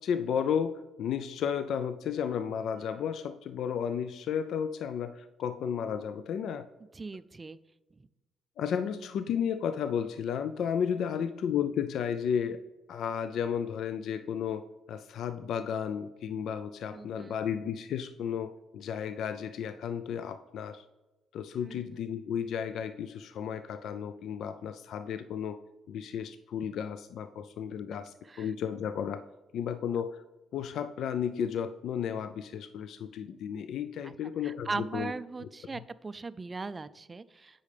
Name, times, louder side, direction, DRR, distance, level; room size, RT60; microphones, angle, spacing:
voice 1, 0.0-6.7 8.6-12.6 12.9-20.8 21.3-25.6 25.9-29.2 29.5-30.2 30.5-35.1, left 8 dB, 75° left, 11 dB, 0.3 m, -33 dB
voice 2, 6.9-7.6 16.9-17.4 21.6-21.8 28.3-28.5 34.0-34.1 34.4-37.6, right 3 dB, 25° right, 15 dB, 0.3 m, -39 dB
8.3 x 5.5 x 3.3 m, 1.1 s
cardioid pair, 90°, 0 cm